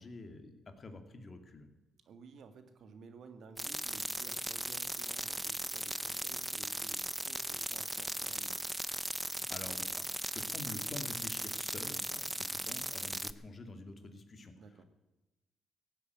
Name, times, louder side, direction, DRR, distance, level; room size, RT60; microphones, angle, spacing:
voice 1, 0.0-1.7 9.2-10.1 10.3-14.5, left 2 dB, 35° left, 6 dB, 2.4 m, -47 dB
voice 2, 2.0-8.6 14.6-14.8, right 5 dB, 65° right, 9 dB, 1.8 m, -54 dB
sound 1, 3.6-13.3, right 1 dB, 5° right, 0.6 m, -38 dB
16.0 x 8.1 x 9.4 m, 1.1 s
cardioid pair, 90°, 0 cm